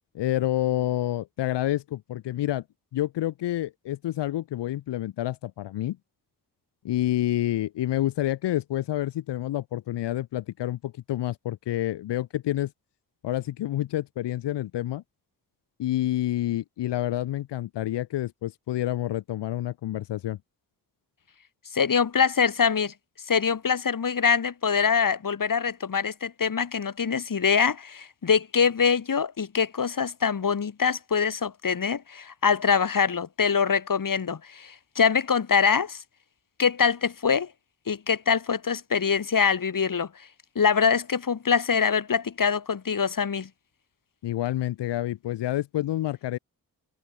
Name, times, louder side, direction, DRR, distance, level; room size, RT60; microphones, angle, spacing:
voice 1, 0.1-2.6 2.9-6.0 6.8-12.7 13.2-15.0 15.8-20.4 44.2-46.4, left 13 dB, 90° left, 2.2 m, -28 dB
voice 2, 21.7-22.9 23.3-36.0 36.6-37.5 37.9-40.1 40.5-43.5, left 6 dB, 50° left, 4.9 m, -24 dB
cardioid pair, 60°, 41 cm